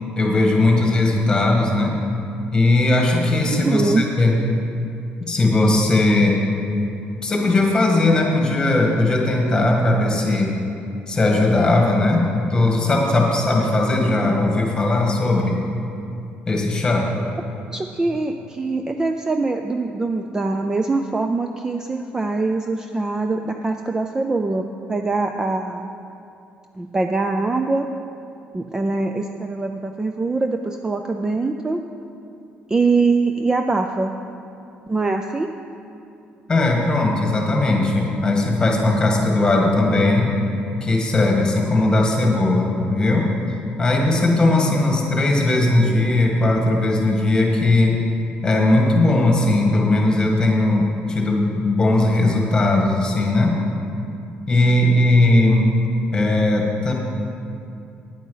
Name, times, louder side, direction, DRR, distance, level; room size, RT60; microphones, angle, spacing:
voice 1, 0.2-2.0 2.5-4.4 5.2-6.4 7.2-10.5 11.1-15.6 16.5-17.1 36.5-40.3 40.8-43.3 43.8-48.0 48.4-53.6 54.5-55.6 56.1-56.9, left 2 dB, 20° left, 0 dB, 1.7 m, -18 dB
voice 2, 3.6-4.0 17.7-25.9 26.8-27.9 28.5-31.8 32.7-34.1 34.9-35.5, right 3 dB, 15° right, 5 dB, 0.4 m, -23 dB
9.3 x 9.2 x 5.6 m, 2.6 s
cardioid pair, 140°, 4 cm